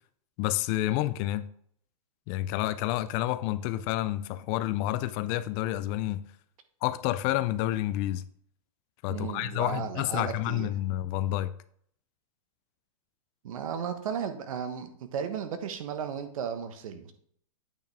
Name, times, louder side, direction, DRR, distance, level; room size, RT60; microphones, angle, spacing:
voice 1, 0.4-1.5 2.3-6.2 6.8-8.2 9.0-11.5, left 14 dB, 35° left, 0.4 m, -29 dB
voice 2, 9.1-10.7 13.4-17.1, right 7 dB, 70° right, 1.3 m, -35 dB
8.9 x 6.0 x 3.4 m
hypercardioid pair, 135°, 18 cm